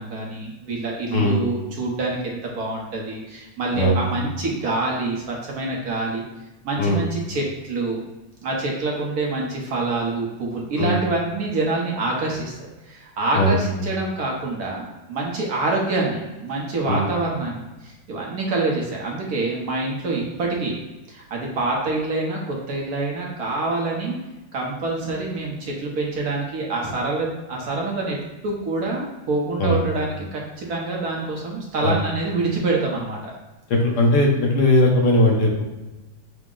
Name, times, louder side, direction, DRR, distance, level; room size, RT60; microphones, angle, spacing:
voice 1, 0.0-6.2 6.6-8.0 8.4-20.7 21.1-24.2 24.5-28.2 28.4-33.3, right 2 dB, 60° right, -2 dB, 1.2 m, -26 dB
voice 2, 33.7-35.6, left 1 dB, 65° left, -1 dB, 1.4 m, -18 dB
5.9 x 2.1 x 3.7 m, 1.1 s
omnidirectional pair, 2.0 m